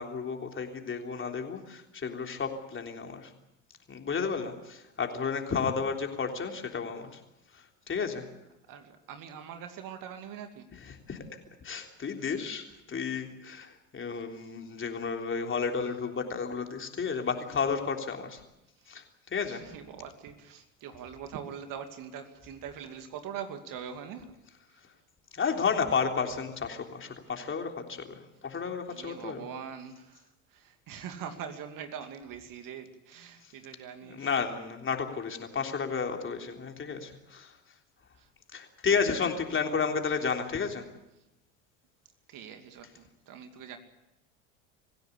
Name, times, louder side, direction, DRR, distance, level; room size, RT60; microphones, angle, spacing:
voice 1, 0.0-3.3 3.9-7.2 7.5-8.3 10.7-11.2 11.6-18.4 18.9-19.6 25.3-29.5 33.4-33.5 34.0-37.6 38.5-40.8, left 5 dB, 30° left, 3 dB, 3.5 m, -32 dB
voice 2, 8.7-10.7 18.8-18.9 19.5-24.3 24.7-24.8 28.9-34.3 37.0-37.1 38.1-38.3 42.3-43.8, right 8 dB, 55° right, 7 dB, 2.7 m, -43 dB
25.0 x 16.0 x 8.5 m, 0.93 s
hypercardioid pair, 70°, 40 cm